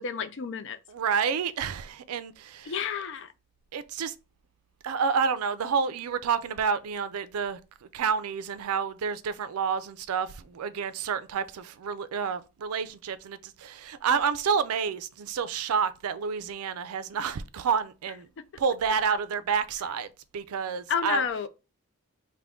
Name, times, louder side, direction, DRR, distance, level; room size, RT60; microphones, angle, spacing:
voice 1, 0.0-0.8 2.7-3.3 20.9-21.5, left 7 dB, 55° left, 0.4 m, -30 dB
voice 2, 0.9-2.8 3.7-4.1 4.8-7.6 7.9-18.3 18.6-20.1 20.3-21.2, right 6 dB, 85° right, 0.4 m, -29 dB
3.5 x 2.1 x 3.6 m
head